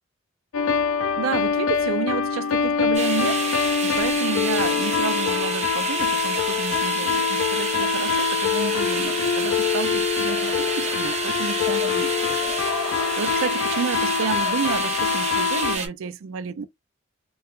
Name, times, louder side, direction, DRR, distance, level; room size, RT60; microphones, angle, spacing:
sound 1, 0.5-15.8, left 7 dB, 90° left, 0.4 m, -24 dB
voice 1, 1.2-3.5 3.8-12.8 13.2-16.7, right 6 dB, 80° right, 0.4 m, -30 dB
sound 2, 2.9-15.9, right 4 dB, 35° right, 0.8 m, -29 dB
sound 3, 7.3-15.7, left 4 dB, 20° left, 0.4 m, -39 dB
2.8 x 2.2 x 3.6 m
head